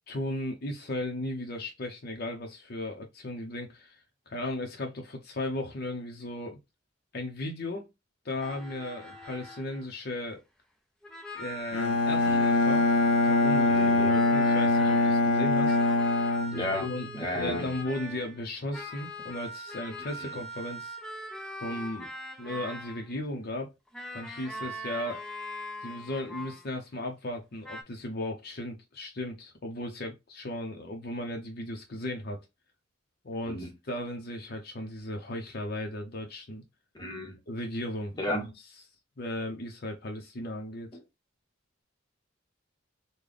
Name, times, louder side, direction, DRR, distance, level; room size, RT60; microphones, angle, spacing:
voice 1, 0.1-4.0 4.3-6.6 7.1-7.9 8.2-10.4 11.3-12.9 13.2-15.8 16.8-17.1 17.3-21.0 21.6-22.1 22.4-23.7 24.1-25.2 25.8-32.4 33.2-36.6 37.5-38.1 39.2-40.9, left 1 dB, 50° left, 0.7 m, -36 dB
sound 1, 8.4-9.9 11.0-15.3 15.7-18.4 18.7-23.1 23.9-26.8 27.6-27.8, equal, 5° left, 0.6 m, -41 dB
Bowed string instrument, 11.7-17.2, left 2 dB, 80° left, 0.4 m, -24 dB
voice 2, 13.7-14.1 16.5-17.7 20.0-20.3 33.5-33.7 37.0-37.4 38.2-38.5, left 1 dB, 20° left, 0.9 m, -33 dB
3.8 x 2.2 x 3.3 m
head